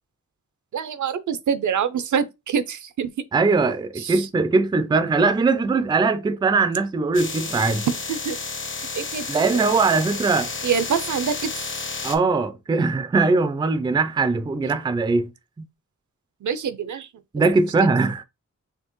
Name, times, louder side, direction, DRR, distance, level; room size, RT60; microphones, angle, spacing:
voice 1, 0.7-3.1 4.0-4.3 7.9-8.4 9.0-9.2 10.6-11.7 16.4-17.1, right 7 dB, 70° right, 0.5 m, -25 dB
voice 2, 3.3-7.9 9.3-10.5 12.0-15.3 15.6-15.7 17.3-18.2, right 4 dB, 15° right, 0.3 m, -21 dB
sound 1, 7.1-12.2, left 4 dB, 40° left, 0.7 m, -31 dB
4.4 x 2.8 x 3.0 m
wide cardioid pair, 145°, 31 cm